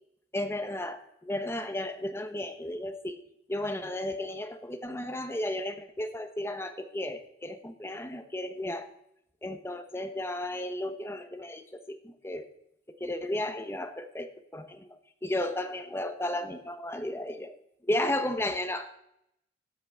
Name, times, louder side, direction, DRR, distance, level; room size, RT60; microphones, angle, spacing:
voice 1, 0.3-3.2 3.5-8.9 9.4-12.5 12.9-17.6 17.8-19.0, left 1 dB, 15° left, 8 dB, 0.9 m, -34 dB
12.0 x 5.9 x 8.4 m, 0.77 s
head